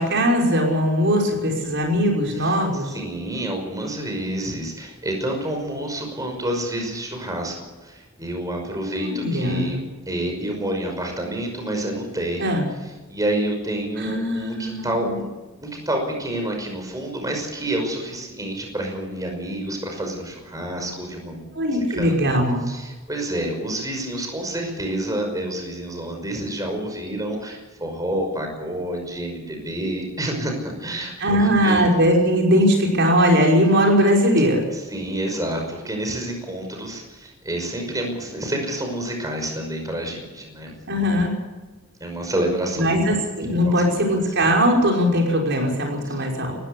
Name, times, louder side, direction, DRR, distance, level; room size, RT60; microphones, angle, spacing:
voice 1, 0.0-2.9 8.8-9.7 12.4-12.7 14.0-15.2 21.5-22.6 31.2-34.7 40.9-41.3 42.8-46.6, equal, 60° right, 0 dB, 5.6 m, -20 dB
voice 2, 2.9-12.6 13.1-15.2 15.6-22.1 22.7-31.8 34.9-40.7 42.0-43.2 43.6-44.0, right 1 dB, 15° right, 3 dB, 5.6 m, -28 dB
19.5 x 16.0 x 8.4 m, 1.2 s
head